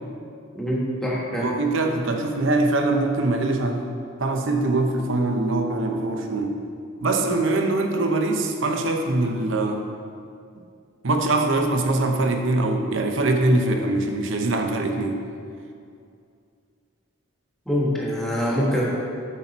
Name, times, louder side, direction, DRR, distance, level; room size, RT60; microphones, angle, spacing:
voice 1, 0.6-1.5 17.7-18.8, equal, ahead, -5 dB, 1.3 m, -24 dB
voice 2, 1.4-3.9 4.2-6.6 7.0-9.8 11.0-15.2, right 2 dB, 60° right, 3 dB, 0.7 m, -23 dB
8.2 x 6.0 x 4.1 m, 2.4 s
head